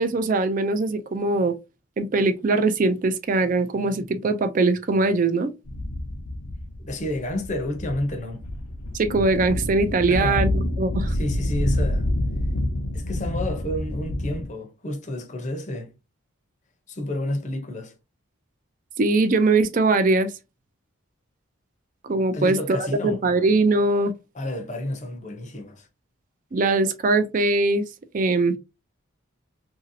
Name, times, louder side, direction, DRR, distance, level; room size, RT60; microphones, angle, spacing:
voice 1, 0.0-1.6 2.0-5.5 8.9-11.1 19.0-20.3 22.0-24.1 26.5-27.9 28.1-28.6, right 3 dB, 40° right, 0.4 m, -21 dB
sound 1, 5.7-14.5, left 1 dB, 90° left, 0.7 m, -28 dB
voice 2, 6.9-8.4 10.1-10.5 11.1-12.1 12.9-15.9 16.9-17.9 22.3-23.2 24.3-25.9, left 1 dB, 35° left, 0.6 m, -30 dB
2.9 x 2.7 x 2.6 m
head